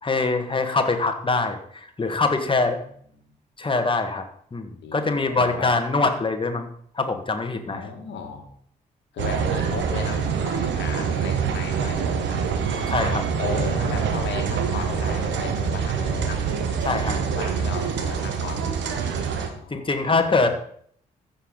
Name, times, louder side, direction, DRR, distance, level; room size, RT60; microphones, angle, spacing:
voice 1, 0.0-2.8 3.6-4.2 4.5-6.7 6.9-7.8 12.9-13.2 16.8-17.2 19.7-20.5, left 3 dB, 25° left, 5 dB, 1.6 m, -23 dB
voice 2, 4.8-5.7 7.6-8.5 9.1-12.5 13.0-16.5 17.2-18.7 19.5-20.5, left 6 dB, 65° left, 3 dB, 1.9 m, -35 dB
sound 1, 9.2-19.5, right 6 dB, 65° right, 1.2 m, -25 dB
14.5 x 5.8 x 3.9 m, 0.62 s
hypercardioid pair, 40°, 20 cm